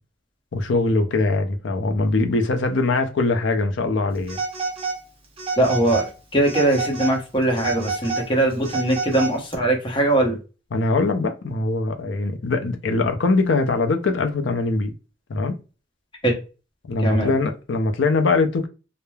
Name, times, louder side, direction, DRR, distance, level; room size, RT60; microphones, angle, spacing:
voice 1, 0.5-4.4 10.7-14.9 15.3-15.6 16.9-18.7, left 3 dB, 70° left, 0.5 m, -22 dB
Telephone, 4.3-5.0 5.4-6.1 6.5-7.2 7.5-9.6, right 4 dB, 30° right, 0.7 m, -29 dB
voice 2, 5.6-10.4 16.2-16.4 17.0-17.3, right 1 dB, 25° left, 0.8 m, -21 dB
3.1 x 2.0 x 2.2 m
head